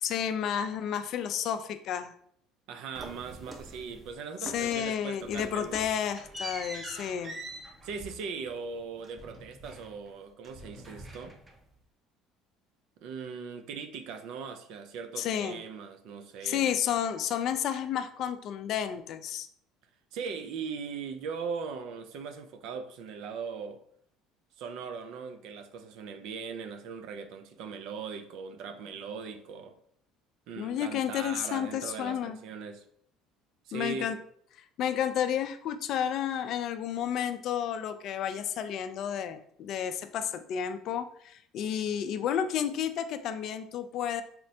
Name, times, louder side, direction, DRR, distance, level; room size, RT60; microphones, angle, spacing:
voice 1, 0.0-2.1 4.4-7.4 15.2-15.6 16.4-19.5 30.6-32.4 33.7-34.2 34.6-44.2, left 9 dB, 60° left, 0.3 m, -31 dB
voice 2, 2.7-5.8 7.8-11.4 13.0-16.7 20.1-23.8 24.6-29.8 30.5-32.8 33.7-34.1, right 5 dB, 70° right, 0.4 m, -39 dB
sound 1, 2.9-4.1 4.4-4.9 5.2-10.2 10.4-11.7, right 2 dB, 25° right, 0.6 m, -44 dB
4.2 x 2.0 x 2.7 m
supercardioid pair, 80°, 0 cm